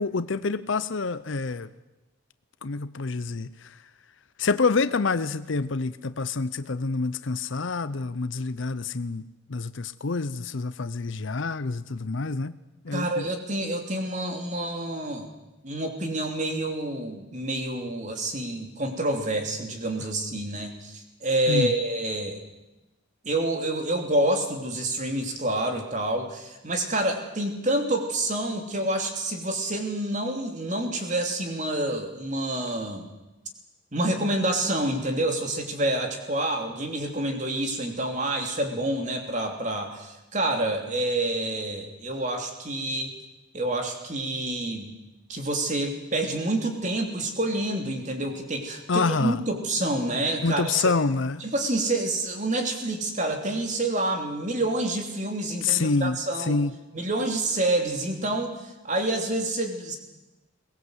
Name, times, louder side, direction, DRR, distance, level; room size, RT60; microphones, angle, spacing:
voice 1, 0.0-1.7 2.6-3.8 4.4-9.2 9.5-12.6 12.8-13.3 21.5-21.7 48.9-49.4 50.4-51.4 55.6-56.7, left 4 dB, 65° left, 0.7 m, -27 dB
voice 2, 12.9-15.3 15.6-22.4 23.2-33.1 33.9-43.1 43.5-44.9 45.3-50.7 51.4-56.6 56.9-60.0, right 1 dB, 35° right, 3.0 m, -28 dB
22.5 x 19.0 x 8.1 m
head